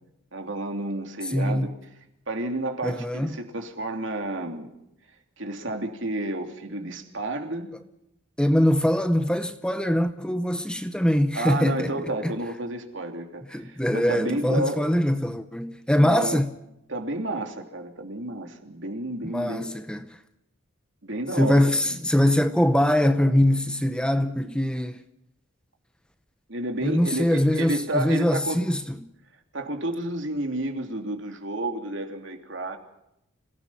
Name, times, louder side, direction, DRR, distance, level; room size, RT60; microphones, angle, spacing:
voice 1, 0.3-1.7 2.3-4.7 5.4-7.7 11.3-14.8 16.0-16.4 16.9-19.7 21.0-21.9 26.5-28.6 29.5-32.8, right 2 dB, 60° right, 3.1 m, -31 dB
voice 2, 1.2-1.7 2.8-3.3 8.4-11.9 12.2-12.3 13.5-16.5 19.2-20.1 21.4-25.0 26.8-29.0, left 1 dB, 5° left, 0.7 m, -23 dB
26.5 x 18.0 x 5.8 m
head